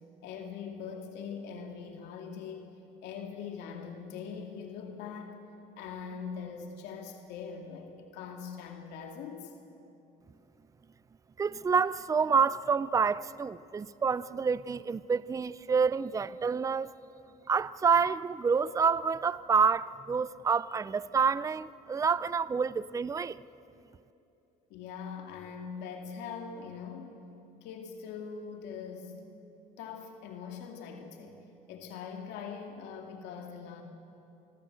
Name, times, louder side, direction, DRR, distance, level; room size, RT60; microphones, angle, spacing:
voice 1, 0.2-2.7 3.0-5.4 5.8-9.5 24.7-27.2 27.6-29.3 29.8-33.8, left 6 dB, 90° left, 2.4 m, -42 dB
voice 2, 11.4-16.9 17.5-23.4, right 5 dB, 20° right, 0.5 m, -28 dB
27.5 x 21.0 x 7.9 m
cardioid pair, 110°, 17 cm